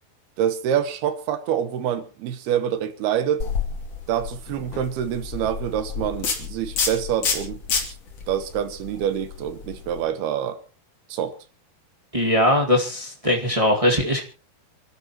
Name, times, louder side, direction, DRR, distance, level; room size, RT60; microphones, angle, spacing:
voice 1, 0.4-3.5 4.1-7.9 8.3-10.6 11.1-11.4, right 9 dB, 80° right, 3.1 m, -26 dB
sound 1, 3.4-10.0, left 5 dB, 45° left, 3.4 m, -30 dB
voice 2, 12.1-14.2, left 1 dB, 25° right, 0.6 m, -20 dB
28.5 x 13.0 x 3.0 m
omnidirectional pair, 4.6 m